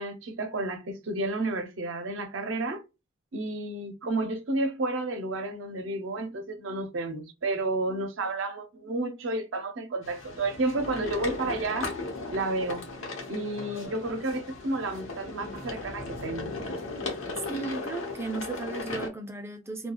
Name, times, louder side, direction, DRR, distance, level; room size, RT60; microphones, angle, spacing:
voice 1, 0.0-2.8 3.3-11.9 12.3-12.8 13.3-16.5, right 2 dB, 65° right, 0.5 m, -31 dB
sound 1, 10.0-19.1, left 3 dB, 75° left, 0.8 m, -37 dB
voice 2, 17.5-19.9, right 3 dB, 10° right, 0.4 m, -35 dB
2.3 x 2.2 x 2.9 m
head